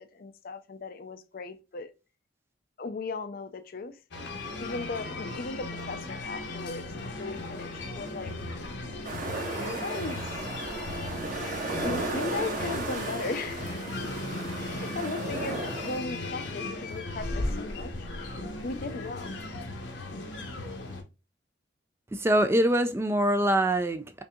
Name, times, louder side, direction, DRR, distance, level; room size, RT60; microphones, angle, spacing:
voice 1, 0.0-1.9 2.8-4.0 4.6-6.9 7.2-8.3 9.6-10.3 11.8-13.8 14.6-18.1 18.6-19.3, left 3 dB, 50° left, 0.5 m, -37 dB
sound 1, 4.1-21.0, left 2 dB, 75° left, 0.9 m, -36 dB
sound 2, 9.0-16.0, right 2 dB, 45° right, 1.4 m, -35 dB
voice 2, 22.1-24.2, right 1 dB, 15° right, 0.3 m, -24 dB
5.2 x 2.7 x 2.3 m
head